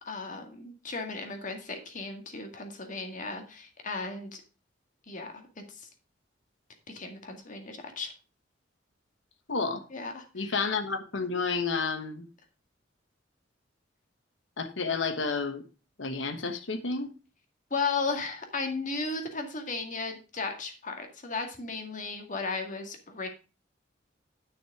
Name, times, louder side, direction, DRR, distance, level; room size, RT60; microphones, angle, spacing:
voice 1, 0.0-4.4 5.1-5.9 6.9-8.1 9.9-10.5 17.7-23.3, left 4 dB, 40° left, 2.0 m, -35 dB
voice 2, 9.5-9.8 10.3-12.3 14.6-15.6 16.0-17.1, left 4 dB, 75° left, 1.3 m, -30 dB
9.6 x 6.4 x 4.8 m
head